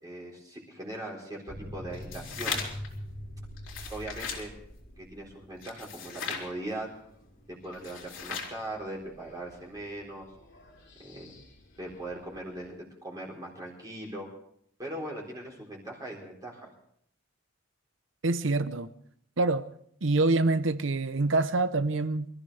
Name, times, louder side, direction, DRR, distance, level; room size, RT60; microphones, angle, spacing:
voice 1, 0.0-2.6 3.9-4.5 5.0-6.9 7.5-10.3 11.0-11.3 11.8-14.3 14.8-16.7, right 1 dB, 20° right, 3.8 m, -40 dB
sound 1, 1.5-12.7, equal, 60° left, 3.2 m, -47 dB
sound 2, 1.9-2.9 3.6-4.5 5.6-6.5 7.7-8.6, left 6 dB, 75° left, 3.4 m, -37 dB
voice 2, 18.2-18.9 19.4-19.7 20.0-22.3, right 2 dB, 70° right, 0.8 m, -26 dB
24.5 x 14.0 x 3.4 m
head